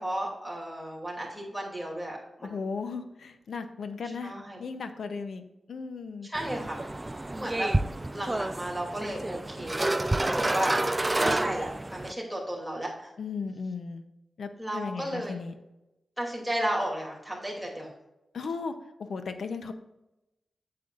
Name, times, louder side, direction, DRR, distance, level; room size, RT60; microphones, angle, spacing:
voice 1, 0.0-2.6 4.2-4.6 6.2-7.7 8.1-9.8 10.2-10.7 11.2-13.1 14.6-15.4 16.2-17.9, right 1 dB, ahead, -2 dB, 2.7 m, -34 dB
voice 2, 2.4-6.3 13.2-14.0 14.4-15.6 18.3-19.7, left 4 dB, 85° left, 8 dB, 0.7 m, -36 dB
sound 1, 6.3-12.1, right 2 dB, 20° right, 0.4 m, -29 dB
8.6 x 7.7 x 2.5 m, 0.94 s
wide cardioid pair, 90°, 0 cm